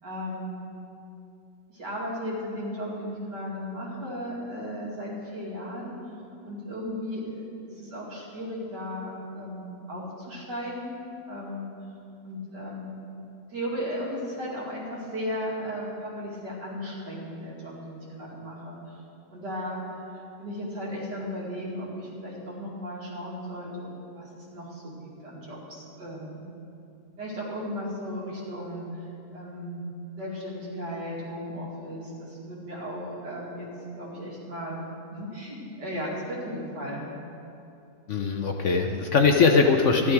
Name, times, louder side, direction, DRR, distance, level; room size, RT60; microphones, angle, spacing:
voice 1, 0.0-0.5 1.7-6.0 6.4-11.7 12.2-12.9 13.5-18.8 19.3-19.8 20.4-23.9 24.1-25.0 25.2-26.5 27.2-29.0 29.3-29.8 30.2-33.7 33.9-37.1, equal, 80° right, -5 dB, 3.0 m, -35 dB
voice 2, 38.1-40.1, left 4 dB, 60° left, 3 dB, 0.9 m, -21 dB
13.5 x 11.5 x 4.6 m, 2.7 s
omnidirectional pair, 1.8 m